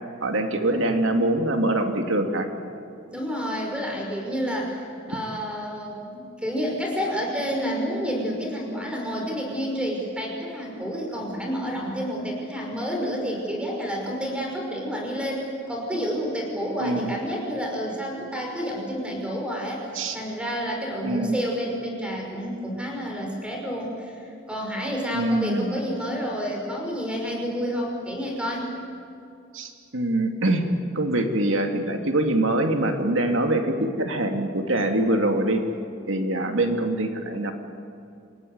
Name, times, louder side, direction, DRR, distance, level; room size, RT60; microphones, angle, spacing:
voice 1, 0.2-2.5 16.8-17.2 19.9-20.2 21.0-21.4 25.1-25.8 29.5-30.7 30.9-35.6 36.1-37.5, right 1 dB, 70° right, 5 dB, 2.5 m, -24 dB
voice 2, 3.1-19.9 20.1-24.1 24.5-28.7, equal, 5° right, 0 dB, 5.6 m, -29 dB
28.0 x 18.5 x 9.5 m, 2.5 s
head